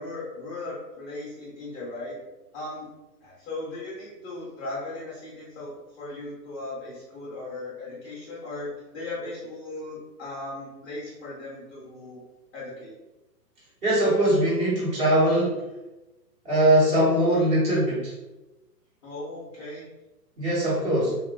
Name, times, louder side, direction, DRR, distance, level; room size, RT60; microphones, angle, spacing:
voice 1, 0.0-2.2 2.5-2.9 3.2-12.2 12.5-12.9 19.0-19.9, left 2 dB, 10° left, -7 dB, 0.6 m, -37 dB
voice 2, 13.8-15.6 16.4-18.1 20.4-21.2, right 1 dB, 15° right, -8 dB, 0.9 m, -21 dB
3.4 x 2.4 x 2.2 m, 1.0 s
hypercardioid pair, 135°, 49 cm